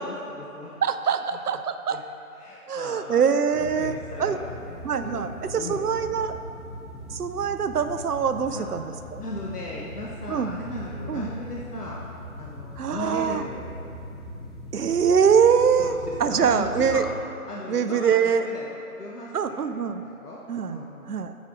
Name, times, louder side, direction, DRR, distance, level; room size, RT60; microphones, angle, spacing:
voice 1, 0.0-0.8 1.1-1.6 1.9-2.0 2.3-3.2 3.8-6.2 7.0-7.1 8.5-8.6 9.2-12.0 12.4-13.7 15.8-17.0 17.5-19.7 20.0-20.4 20.7-21.2, left 1 dB, 90° left, -4 dB, 1.2 m, -37 dB
voice 2, 0.8-2.0 2.7-4.4 4.8-6.4 7.1-9.2 10.3-10.5 11.1-11.3 12.8-13.4 14.7-15.9 16.2-17.0 17.7-18.5 19.3-20.0 20.5-20.8 21.1-21.3, right 7 dB, 85° right, 10 dB, 0.6 m, -23 dB
sound 1, 3.5-17.2, left 1 dB, 20° right, 0.9 m, -40 dB
9.3 x 6.2 x 3.6 m, 2.7 s
figure-of-eight pair, 165°, 45 cm